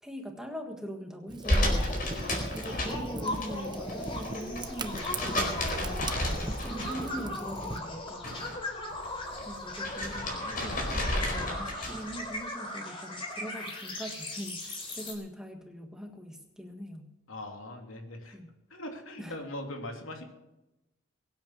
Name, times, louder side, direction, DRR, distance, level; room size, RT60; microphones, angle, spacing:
voice 1, 0.0-8.6 9.4-17.1 18.3-18.5 19.2-19.4, equal, 5° right, 4 dB, 1.6 m, -42 dB
Fire, 1.3-7.8, right 2 dB, 20° right, 0.8 m, -40 dB
sound 1, 1.4-3.5 3.8-7.3 7.6-8.6 8.9-12.1, left 1 dB, 40° left, 4.6 m, -32 dB
sound 2, 1.4-15.1, left 1 dB, 25° left, 3.8 m, -38 dB
voice 2, 17.3-18.4 18.7-20.2, left 1 dB, 80° left, 3 dB, 3.0 m, -40 dB
22.5 x 9.0 x 6.6 m, 0.95 s
head